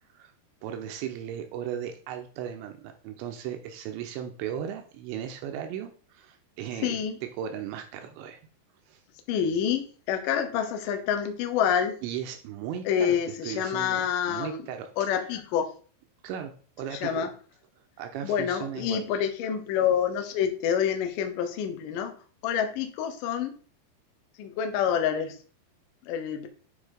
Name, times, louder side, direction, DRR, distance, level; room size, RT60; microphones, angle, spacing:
voice 1, 0.6-7.0 7.4-8.4 8.9-9.0 12.0-13.2 13.4-14.9 16.2-17.3 18.0-19.0, right 9 dB, 85° right, 5 dB, 3.0 m, -36 dB
voice 2, 6.8-7.2 9.3-12.0 12.9-14.7 15.0-15.7 16.9-17.3 18.2-22.2 22.4-23.5 24.4-25.4 26.0-26.5, left 8 dB, 75° left, 6 dB, 1.9 m, -27 dB
9.3 x 3.7 x 4.9 m, 0.41 s
omnidirectional pair, 5.4 m